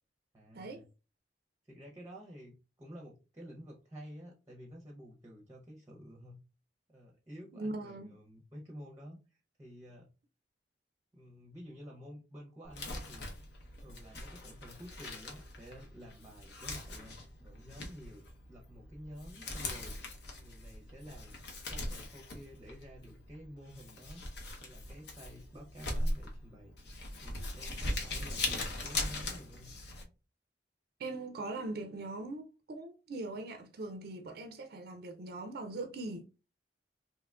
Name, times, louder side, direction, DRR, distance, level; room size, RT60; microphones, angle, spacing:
voice 1, 0.3-0.9 1.6-6.4 6.9-10.1 11.1-13.3 13.8-21.3 21.6-24.2 24.6-29.7, equal, 15° right, 0.6 m, -51 dB
voice 2, 7.5-8.1 31.0-36.2, right 2 dB, 60° right, 0.4 m, -41 dB
Crumpling crinkling, 12.6-30.0, left 2 dB, 65° left, 0.8 m, -40 dB
3.5 x 2.8 x 2.3 m
head